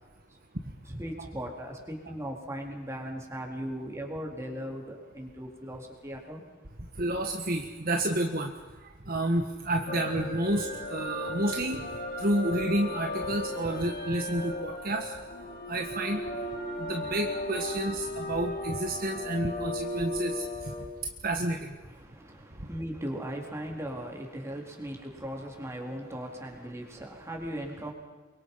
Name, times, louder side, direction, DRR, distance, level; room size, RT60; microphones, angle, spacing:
voice 1, 0.9-6.4 21.8-27.9, equal, 15° right, 0 dB, 4.1 m, -38 dB
voice 2, 7.0-8.5 9.1-11.8 12.2-15.1 15.7-16.2 16.8-20.4 21.2-21.7, right 1 dB, 45° right, 3 dB, 1.6 m, -30 dB
sound 1, 9.9-20.9, left 1 dB, 45° left, 3.1 m, -36 dB
28.5 x 24.0 x 5.8 m, 1.3 s
head